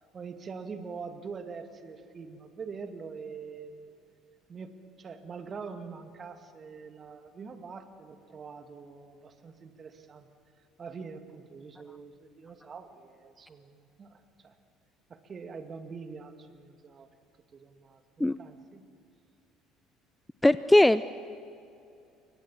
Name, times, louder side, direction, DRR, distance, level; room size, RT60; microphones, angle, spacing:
voice 1, 0.1-3.9 4.5-10.3 10.8-14.6 15.1-17.1 17.5-18.9, right 5 dB, 35° right, 8 dB, 2.1 m, -44 dB
voice 2, 20.4-21.0, left 1 dB, 10° left, 15 dB, 0.5 m, -19 dB
29.0 x 24.0 x 7.3 m, 2.6 s
figure-of-eight pair, 55°, 0 cm